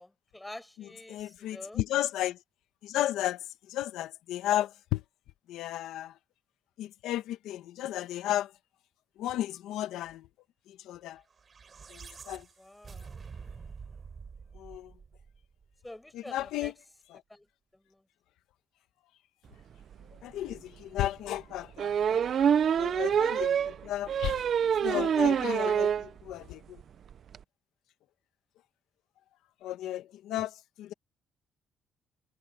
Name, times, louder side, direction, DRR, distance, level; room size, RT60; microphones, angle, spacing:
voice 1, 0.0-1.8 12.6-13.2 15.8-16.4 16.6-16.7 17.3-17.5, left 1 dB, 10° left, 5.5 m, -47 dB
voice 2, 0.8-2.4 2.8-5.0 5.5-6.2 6.8-8.5 9.2-10.3 10.7-11.2 11.9-12.5 14.5-14.9 16.1-16.8 17.1-17.2 20.2-26.8 29.6-30.9, left 13 dB, 85° left, 1.7 m, -34 dB
sound 1, 11.3-15.7, right 5 dB, 40° right, 5.5 m, -47 dB
sound 2, 20.0-20.1 20.5-20.6 21.8-26.1 26.5-26.6 26.8-26.9 27.1-27.4, right 8 dB, 60° right, 0.7 m, -26 dB
cardioid pair, 85°, 0 cm